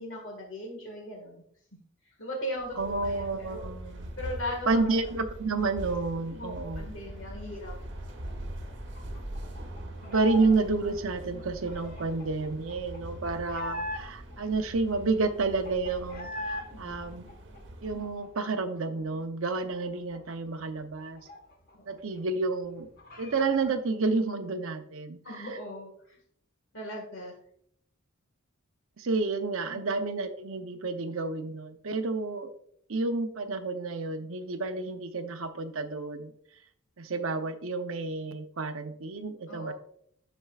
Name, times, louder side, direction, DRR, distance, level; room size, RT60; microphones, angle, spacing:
voice 1, 0.0-1.4 1.7-1.8 2.2-3.6 4.2-4.9 6.4-7.7 16.7-17.0 21.8-21.9 25.2-26.2 26.7-27.3 29.7-29.9 39.5-39.7, equal, 60° left, 0 dB, 1.8 m, -38 dB
sound 1, 2.6-18.3, right 1 dB, 55° right, 1.2 m, -42 dB
voice 2, 2.7-4.1 4.7-6.9 10.0-17.3 17.8-21.3 21.9-22.9 23.2-25.5 29.0-32.5 32.9-36.3 37.0-39.7, right 3 dB, 70° right, 8 dB, 0.7 m, -30 dB
sound 2, 8.9-10.6 10.8-14.3 14.8-14.9 15.0-16.7 17.0-18.7 19.0-19.1 19.4-21.9 22.2-22.3 22.6-23.8, left 1 dB, 45° left, 1.4 m, -41 dB
12.0 x 4.5 x 2.4 m, 0.66 s
head